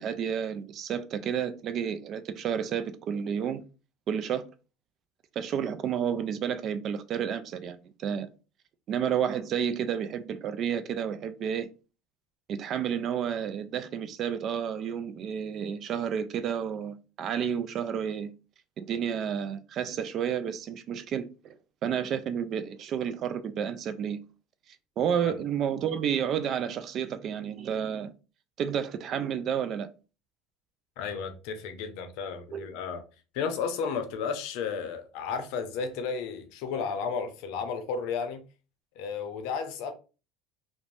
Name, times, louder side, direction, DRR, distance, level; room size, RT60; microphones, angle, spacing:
voice 1, 0.0-3.6 4.1-4.4 5.4-8.3 8.9-11.7 12.5-18.3 18.8-21.5 21.8-24.2 25.0-28.1 28.6-29.9 32.5-32.7, right 8 dB, 45° right, 0.3 m, -31 dB
voice 2, 31.0-33.0 33.3-38.4 39.0-39.9, left 6 dB, 70° left, 0.5 m, -33 dB
2.6 x 2.1 x 3.1 m
supercardioid pair, 120°, 0 cm